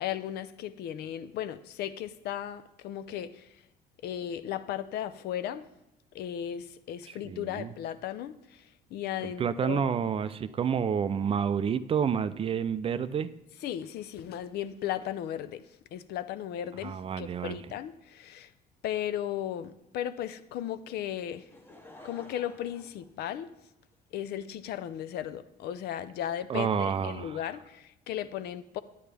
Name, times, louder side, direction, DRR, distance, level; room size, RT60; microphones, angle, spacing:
voice 1, 0.0-3.5 4.0-5.6 6.1-8.6 8.9-10.0 13.6-15.6 15.9-18.5 18.8-21.5 22.0-23.5 24.1-28.8, left 11 dB, 70° left, 0.5 m, -36 dB
voice 2, 7.2-7.7 9.2-13.3 16.8-17.6 26.5-27.4, right 7 dB, 35° right, 0.4 m, -29 dB
Laughter / Crowd, 21.3-23.9 24.6-24.7, left 1 dB, 10° left, 0.9 m, -52 dB
9.3 x 9.0 x 3.4 m
cardioid pair, 110°, 17 cm